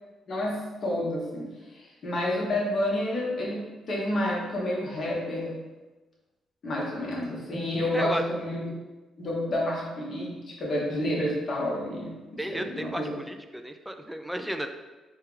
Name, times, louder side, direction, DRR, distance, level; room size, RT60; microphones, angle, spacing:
voice 1, 0.3-5.5 6.6-8.8 9.2-12.2 12.5-13.1, left 1 dB, 45° left, -4 dB, 1.2 m, -29 dB
voice 2, 12.4-14.8, equal, 5° right, 6 dB, 0.3 m, -34 dB
4.4 x 2.4 x 3.3 m, 1.2 s
cardioid pair, 90°, 0 cm